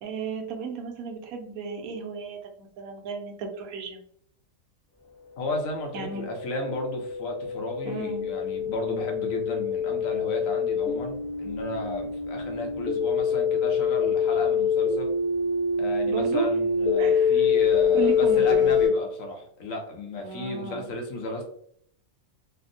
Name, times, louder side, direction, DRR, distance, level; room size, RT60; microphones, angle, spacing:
voice 1, 0.0-4.0 5.9-6.3 7.8-8.3 16.1-16.5 17.0-17.5 17.9-18.7 20.2-20.9, right 5 dB, 90° right, 4 dB, 1.1 m, -34 dB
voice 2, 5.4-15.1 15.8-21.4, left 1 dB, 75° left, 2 dB, 1.1 m, -34 dB
sound 1, 5.7-18.9, left 5 dB, 45° left, 0.9 m, -25 dB
3.5 x 2.1 x 2.5 m, 0.65 s
omnidirectional pair, 1.4 m